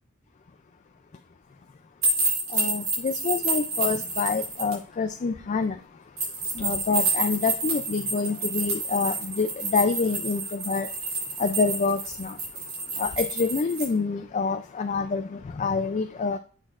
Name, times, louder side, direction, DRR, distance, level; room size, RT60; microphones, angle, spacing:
sound 1, 2.0-4.7 6.2-13.9, right 3 dB, 65° right, 3.8 m, -29 dB
voice 1, 2.5-16.4, left 4 dB, 35° left, 0.3 m, -27 dB
7.9 x 6.3 x 2.5 m
head